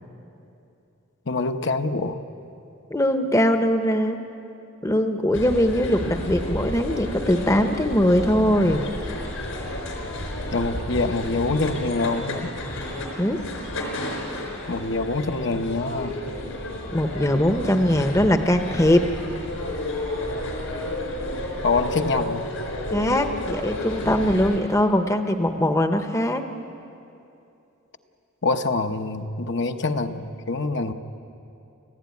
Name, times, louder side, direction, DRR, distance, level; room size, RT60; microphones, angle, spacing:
voice 1, 1.3-2.2 10.5-12.5 14.7-16.2 21.6-22.5 28.4-30.9, left 3 dB, 55° left, 6 dB, 1.0 m, -25 dB
voice 2, 2.9-4.2 4.8-8.9 13.2-13.4 16.9-19.1 22.9-26.4, equal, 15° left, 7 dB, 0.9 m, -21 dB
sound 1, 5.3-24.6, left 1 dB, 75° left, 4.6 m, -31 dB
29.5 x 15.0 x 9.5 m, 2.7 s
head